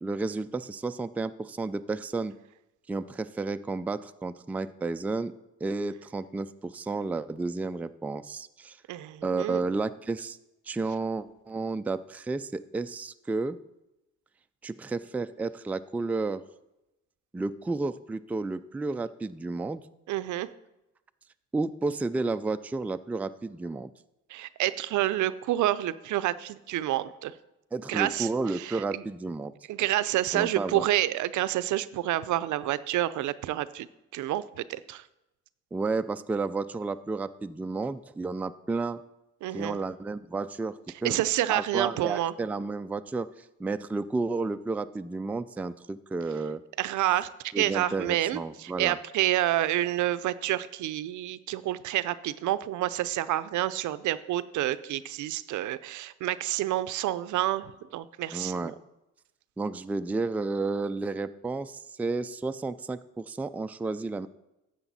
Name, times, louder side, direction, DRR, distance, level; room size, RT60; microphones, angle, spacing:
voice 1, 0.0-2.3 2.9-5.3 5.6-8.8 9.2-10.4 10.7-13.6 14.6-16.4 17.3-19.8 21.5-23.9 27.7-29.5 30.3-30.8 35.7-39.0 39.5-41.2 41.5-46.6 47.5-49.0 58.3-58.7 59.6-64.3, right 3 dB, 5° right, 10 dB, 0.3 m, -32 dB
voice 2, 8.9-9.6 20.1-20.5 24.3-27.3 27.9-29.0 29.7-33.9 34.1-35.0 39.4-39.8 41.0-42.3 46.8-47.3 47.6-58.7, right 14 dB, 75° right, 15 dB, 0.5 m, -28 dB
12.5 x 7.9 x 4.1 m, 0.93 s
cardioid pair, 90°, 30 cm